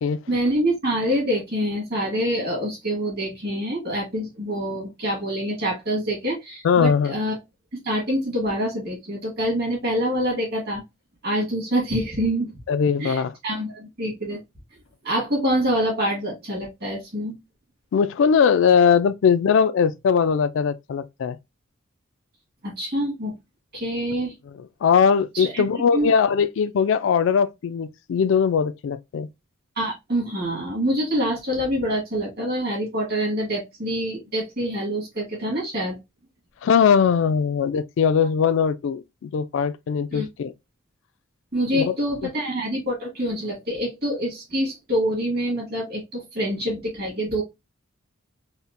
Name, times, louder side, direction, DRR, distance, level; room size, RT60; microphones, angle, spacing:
voice 1, 0.3-7.3 7.8-10.8 11.2-12.5 13.0-14.4 15.0-17.3 22.6-23.3 23.7-24.3 25.3-25.6 25.9-26.1 29.8-36.0 40.1-40.3 41.5-47.4, equal, 50° right, 1.7 m, -26 dB
voice 2, 6.6-7.1 12.7-13.4 17.9-21.4 24.5-29.3 36.6-40.5 41.7-42.0 42.2-42.3, left 6 dB, 65° left, 0.3 m, -20 dB
4.1 x 2.1 x 2.4 m
head